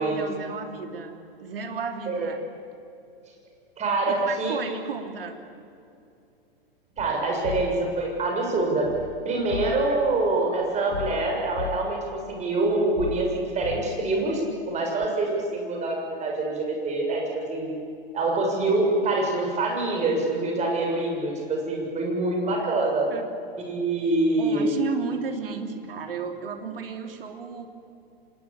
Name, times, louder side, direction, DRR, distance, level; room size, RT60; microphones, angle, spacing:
voice 1, 0.0-2.4 4.1-5.4 23.1-23.3 24.4-27.7, right 6 dB, 70° right, 6 dB, 3.2 m, -33 dB
voice 2, 3.8-4.8 7.0-8.9 9.2-17.2 17.5-17.7 18.1-23.1 23.6-24.7, right 2 dB, 25° right, 1 dB, 6.8 m, -25 dB
sound 1, 7.0-8.0 8.8-10.0 10.9-12.1 13.0-14.2 15.0-15.1, left 9 dB, 70° left, 1.4 m, -37 dB
26.0 x 20.0 x 8.8 m, 2.6 s
hypercardioid pair, 110°, 29 cm